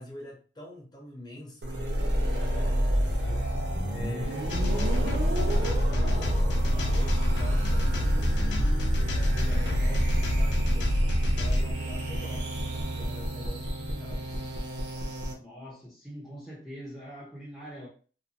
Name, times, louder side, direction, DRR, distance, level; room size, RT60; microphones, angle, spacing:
voice 1, 0.0-3.4 3.8-8.7 9.1-10.9 11.3-14.4, left 1 dB, 25° left, 0.8 m, -45 dB
sound 1, 1.6-15.3, right 1 dB, 80° right, 0.7 m, -31 dB
sound 2, 2.9-4.4 4.7-4.8 5.1-6.6 7.3-10.4, left 1 dB, 40° left, 1.0 m, -43 dB
sound 3, 4.5-11.6, equal, 85° left, 0.5 m, -25 dB
voice 2, 15.4-17.9, equal, ahead, 0.6 m, -43 dB
2.6 x 2.1 x 2.8 m
head